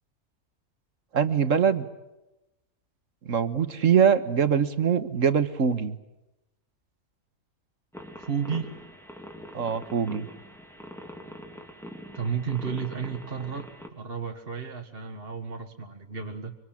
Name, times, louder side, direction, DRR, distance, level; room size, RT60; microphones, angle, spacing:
voice 1, 1.1-1.9 3.3-6.0 9.5-10.3, right 7 dB, 60° right, 11 dB, 1.7 m, -23 dB
sound 1, 7.9-13.9, equal, ahead, 3.2 m, -43 dB
voice 2, 8.2-8.8 12.1-16.6, right 6 dB, 40° right, 4 dB, 1.8 m, -32 dB
25.5 x 25.5 x 8.6 m, 0.96 s
omnidirectional pair, 1.5 m